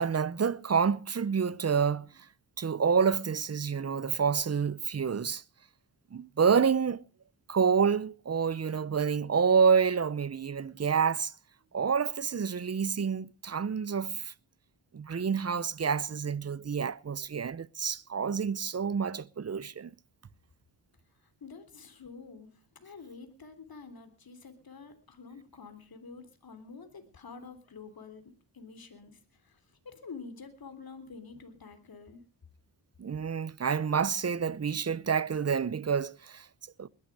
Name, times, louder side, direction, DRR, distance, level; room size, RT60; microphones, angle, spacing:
voice 1, 0.0-2.3 2.6-5.4 6.1-7.0 7.5-11.3 11.7-14.3 14.9-19.9 33.0-36.5 36.8-36.9, right 6 dB, 35° right, 0.8 m, -28 dB
voice 2, 21.4-22.5 22.8-28.2 28.5-29.2 29.4-29.6 29.8-32.2, left 4 dB, 50° left, 3.4 m, -48 dB
20.5 x 12.0 x 4.8 m
cardioid pair, 55°, 44 cm